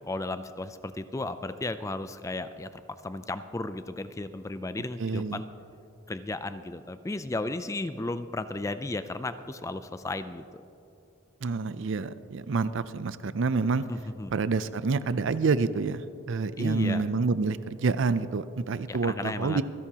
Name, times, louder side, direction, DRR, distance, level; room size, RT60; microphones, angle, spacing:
voice 1, 0.1-5.5 6.1-10.6 13.9-14.3 16.6-17.0 18.9-19.6, left 2 dB, 15° left, 11 dB, 0.3 m, -34 dB
voice 2, 5.0-5.4 11.4-13.8 14.3-16.0 16.3-19.6, right 4 dB, 60° right, 14 dB, 0.5 m, -28 dB
26.0 x 10.5 x 2.9 m, 2.6 s
head